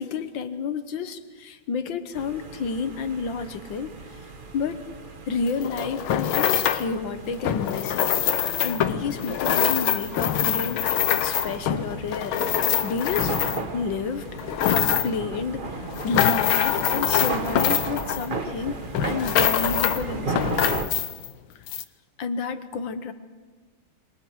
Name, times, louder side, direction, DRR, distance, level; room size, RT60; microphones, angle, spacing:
voice 1, 0.0-3.9 4.5-4.8 5.3-8.1 8.4-13.4 13.7-14.2 14.7-15.8 16.0-20.9 22.2-23.1, left 5 dB, 70° left, 10 dB, 1.8 m, -30 dB
sound 1, 2.1-20.8, right 3 dB, 30° right, 1.0 m, -35 dB
sound 2, 5.5-6.9 7.4-13.8 14.3-15.3 15.8-18.6 18.9-20.0 20.4-21.3 21.7-21.8, left 10 dB, 85° left, 1.7 m, -24 dB
27.5 x 23.0 x 4.8 m, 1.4 s
omnidirectional pair, 2.2 m